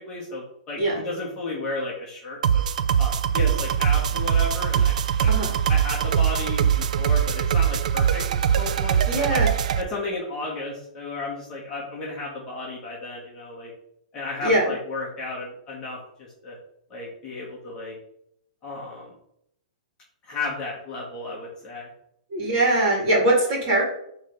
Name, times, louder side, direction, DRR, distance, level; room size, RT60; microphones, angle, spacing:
voice 1, 0.0-2.6 3.0-4.9 5.2-5.3 5.7-8.2 8.6-9.4 9.8-13.7 14.1-16.6 16.9-17.9 18.6-19.1 20.2-21.9, left 2 dB, 15° left, -5 dB, 1.3 m, -33 dB
sound 1, 2.4-9.8, right 8 dB, 65° right, 0.4 m, -22 dB
voice 2, 9.1-9.5 14.4-14.7 22.3-23.8, right 1 dB, 30° right, -2 dB, 2.2 m, -21 dB
6.4 x 3.2 x 5.2 m, 0.73 s
hypercardioid pair, 180°, 4 cm